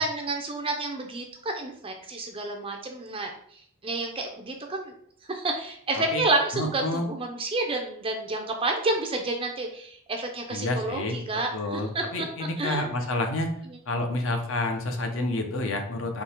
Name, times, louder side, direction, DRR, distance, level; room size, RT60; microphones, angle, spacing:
voice 1, 0.0-3.3 3.8-4.9 5.3-12.3 12.6-12.8, right 2 dB, 25° right, 3 dB, 0.4 m, -29 dB
voice 2, 6.5-7.1 10.5-11.1 11.5-13.5 13.9-16.2, left 2 dB, 65° left, 5 dB, 0.7 m, -29 dB
3.7 x 2.8 x 4.3 m, 0.65 s
head